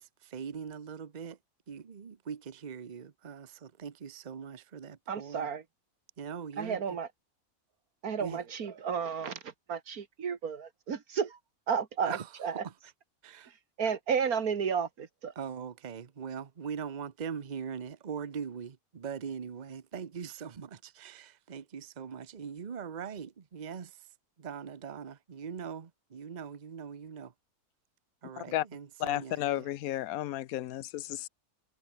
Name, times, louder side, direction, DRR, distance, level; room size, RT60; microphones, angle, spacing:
voice 1, 0.0-1.4 1.7-5.5 6.2-6.8 8.2-8.4 12.1-12.3 12.6-12.7 13.2-13.5 15.4-27.3 28.2-29.7, right 7 dB, 35° right, 0.9 m, -41 dB
voice 2, 5.1-5.6 6.6-7.1 8.0-11.4 11.7-12.6 13.5-15.3, right 6 dB, 90° right, 2.1 m, -32 dB
voice 3, 29.0-31.3, left 13 dB, 80° left, 1.1 m, -33 dB
omnidirectional pair, 1.5 m